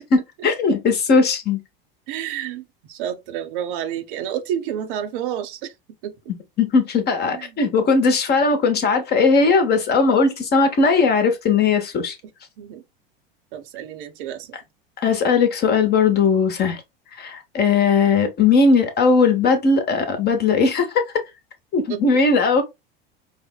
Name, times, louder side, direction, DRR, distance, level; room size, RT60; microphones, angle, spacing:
voice 1, 0.1-1.6 6.6-12.1 15.0-16.8 17.2-21.1 21.7-22.6, left 4 dB, 35° left, 0.9 m, -18 dB
voice 2, 2.1-5.7 6.0-6.1 7.3-7.5 12.6-12.8 13.5-14.6 21.9-22.0, right 10 dB, 60° right, 0.7 m, -30 dB
4.9 x 2.1 x 2.2 m
hypercardioid pair, 85°, 29 cm